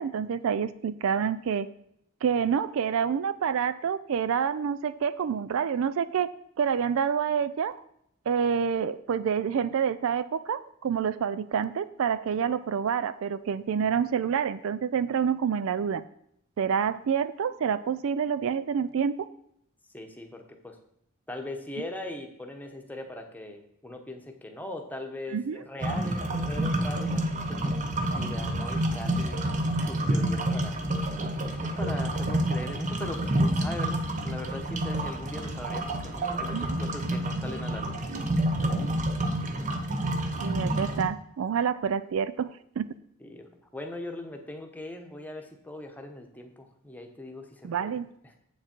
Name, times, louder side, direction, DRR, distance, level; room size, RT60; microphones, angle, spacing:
voice 1, 0.0-1.7 2.2-6.3 6.6-7.7 8.3-16.0 16.6-19.3 25.3-25.6 36.5-36.8 40.4-42.9 47.6-48.1, right 7 dB, 65° right, 15 dB, 0.4 m, -28 dB
voice 2, 19.9-20.8 21.3-27.8 28.2-29.4 29.8-30.8 31.6-38.0 43.2-47.9 48.2-48.4, left 1 dB, 10° left, 4 dB, 1.0 m, -40 dB
sound 1, 25.8-41.0, right 1 dB, 35° right, 0.8 m, -29 dB
7.7 x 7.3 x 4.4 m, 0.73 s
head